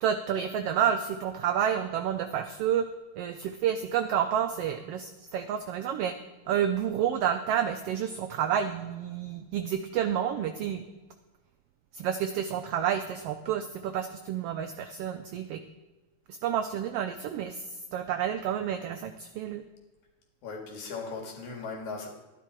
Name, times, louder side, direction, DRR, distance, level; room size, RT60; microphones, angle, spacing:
voice 1, 0.0-2.9 3.2-6.2 6.5-10.8 11.9-15.6 16.3-19.6, right 9 dB, 90° right, 9 dB, 1.3 m, -29 dB
voice 2, 20.4-22.1, left 4 dB, 80° left, 1 dB, 3.4 m, -38 dB
12.0 x 10.5 x 4.7 m, 1.2 s
omnidirectional pair, 3.3 m